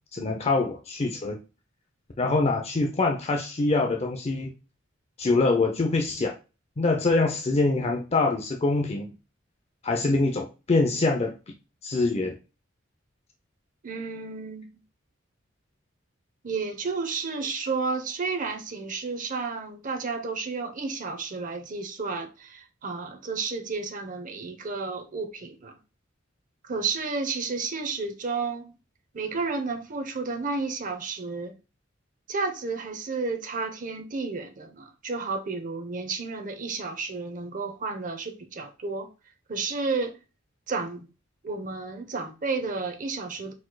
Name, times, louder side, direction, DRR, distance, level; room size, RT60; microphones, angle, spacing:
voice 1, 0.1-1.4 2.2-4.5 5.2-6.3 6.8-9.1 9.8-11.3 11.8-12.3, left 3 dB, 35° left, 0.5 m, -24 dB
voice 2, 13.8-14.7 16.4-25.8 26.6-28.7 29.1-31.6 32.3-39.1 39.5-40.2 40.7-41.1 41.4-43.5, right 4 dB, 45° right, 0.7 m, -32 dB
4.6 x 4.2 x 2.2 m
head